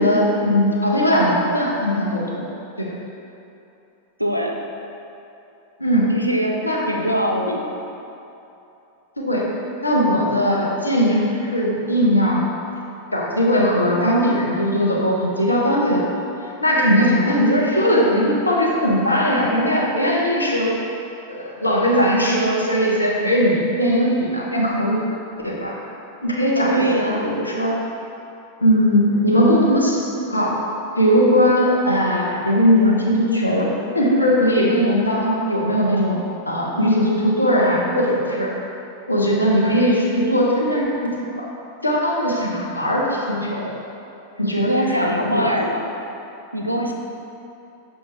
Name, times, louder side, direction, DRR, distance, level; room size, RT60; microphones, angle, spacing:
voice 1, 0.0-2.4 2.8-2.9 5.8-6.1 6.6-6.8 9.2-9.5 9.8-12.4 13.1-16.0 16.6-20.7 21.3-25.1 25.4-25.7 26.2-27.8 28.6-30.6 31.0-33.7 33.9-36.2 36.5-38.5 39.1-41.5 41.8-43.7 44.4-45.5, equal, 85° left, -4 dB, 0.6 m, -19 dB
voice 2, 4.2-4.5 6.1-6.6 6.9-7.8 26.5-27.3 44.6-45.8 46.5-46.9, equal, 90° right, 1 dB, 0.3 m, -22 dB
5.4 x 2.2 x 3.1 m, 2.8 s
figure-of-eight pair, 90°, 0 cm